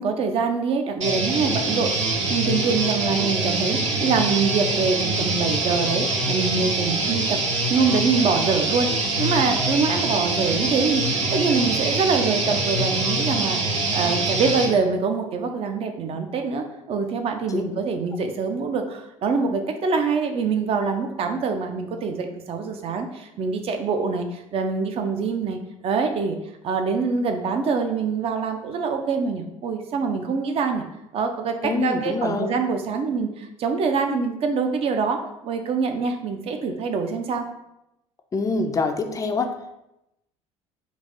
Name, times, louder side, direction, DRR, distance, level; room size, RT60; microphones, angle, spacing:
voice 1, 0.0-1.9 2.3-7.4 7.7-8.9 9.2-25.6 25.8-26.4 26.6-30.8 31.1-37.5, right 5 dB, 35° right, 5 dB, 0.6 m, -24 dB
sound 1, 1.0-14.7, right 2 dB, 75° right, 0.7 m, -24 dB
voice 2, 31.6-32.5 38.3-39.6, left 3 dB, 20° left, 6 dB, 0.4 m, -25 dB
4.0 x 2.6 x 3.6 m, 0.87 s
figure-of-eight pair, 60°, 16 cm